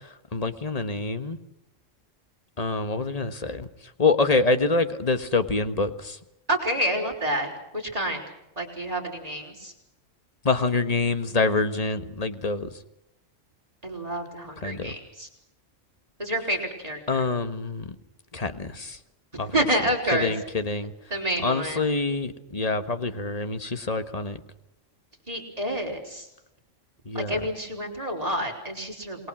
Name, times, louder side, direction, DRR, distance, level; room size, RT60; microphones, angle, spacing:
voice 1, 0.3-1.4 2.6-3.7 4.0-6.2 10.4-12.7 14.6-14.9 17.1-17.9 18.3-19.0 19.4-19.5 20.1-20.9 21.4-24.4 27.1-27.3, left 3 dB, 30° left, 10 dB, 1.5 m, -26 dB
voice 2, 6.5-8.2 8.6-9.7 13.8-15.3 16.2-17.2 19.5-20.3 21.1-21.8 25.3-26.3 27.1-29.3, right 1 dB, 30° right, 1 dB, 4.9 m, -28 dB
28.0 x 21.0 x 6.3 m, 0.86 s
omnidirectional pair, 1.3 m